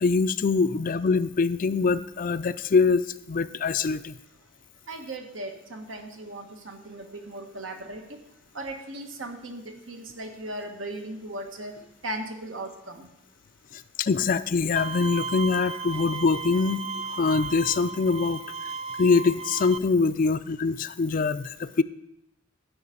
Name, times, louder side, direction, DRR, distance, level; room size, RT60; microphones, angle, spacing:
voice 1, 0.0-3.0 3.3-4.1 14.0-16.9 17.2-18.4 19.0-21.8, left 4 dB, 45° left, 13 dB, 0.4 m, -23 dB
voice 2, 4.9-8.0 8.5-9.6 9.9-11.7 12.0-13.1, right 1 dB, 80° right, 4 dB, 1.6 m, -37 dB
Bowed string instrument, 14.8-19.8, right 4 dB, 30° right, 0.4 m, -35 dB
12.5 x 4.9 x 8.4 m, 0.85 s
head